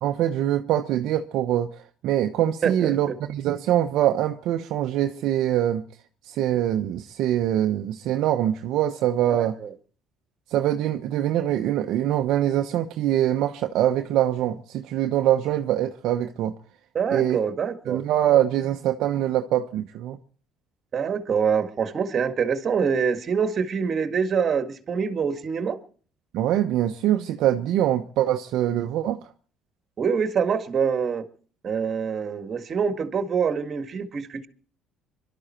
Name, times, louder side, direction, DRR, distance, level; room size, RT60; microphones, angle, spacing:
voice 1, 0.0-1.7 2.0-5.8 6.3-9.6 10.5-16.5 17.1-17.4 17.9-20.2 26.3-29.2, right 12 dB, 70° right, 1.0 m, -23 dB
voice 2, 2.6-3.2 9.3-9.7 16.9-18.0 20.9-25.8 30.0-31.2 31.6-34.5, right 6 dB, 45° right, 1.9 m, -25 dB
23.0 x 12.5 x 4.5 m
supercardioid pair, 75°, 0 cm